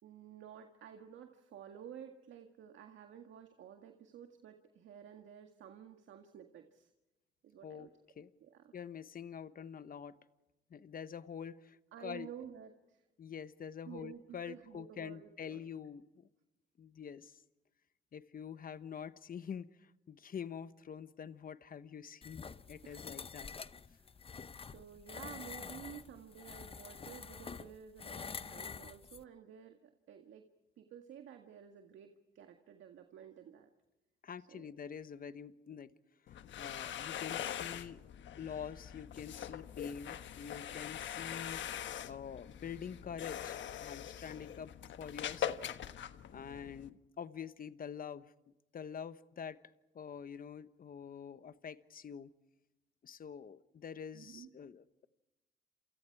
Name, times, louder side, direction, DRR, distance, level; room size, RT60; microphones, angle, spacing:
voice 1, 0.0-6.9 7.4-7.9 8.4-8.7 11.9-13.1 13.9-15.6 22.8-23.2 23.9-24.1 24.7-30.5 30.8-33.7 34.4-34.7 46.3-46.7 54.1-54.5, right 9 dB, 75° right, 5 dB, 1.9 m, -52 dB
voice 2, 8.7-10.2 10.7-12.3 13.2-16.3 16.8-17.4 18.1-23.5 34.2-35.9 36.3-38.0 38.4-41.7 42.1-45.7 46.3-48.3 48.7-49.6 49.9-52.3 53.0-55.1, left 7 dB, 45° left, 13 dB, 1.2 m, -46 dB
sound 1, 22.2-29.2, left 5 dB, 30° left, 0.8 m, -47 dB
sound 2, 36.3-46.9, left 10 dB, 70° left, 1.3 m, -43 dB
29.0 x 28.0 x 4.8 m, 0.98 s
cardioid pair, 90°, 20 cm